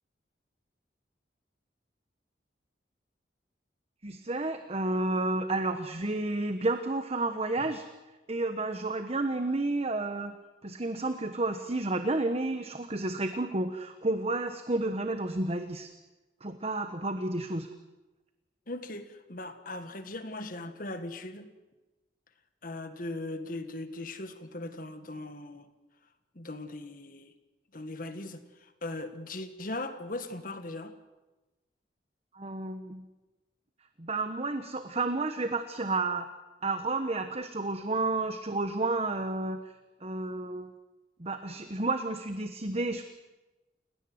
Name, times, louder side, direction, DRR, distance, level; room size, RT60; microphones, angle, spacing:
voice 1, 4.0-7.9 8.3-10.3 10.6-15.9 16.4-17.7 32.3-33.0 34.0-36.3 36.6-40.7 41.2-43.0, right 2 dB, 35° right, 8 dB, 1.2 m, -31 dB
voice 2, 18.7-21.5 22.6-25.7 26.4-27.3 27.7-30.9, left 2 dB, 50° left, 9 dB, 1.8 m, -39 dB
29.5 x 17.5 x 8.0 m, 1.1 s
head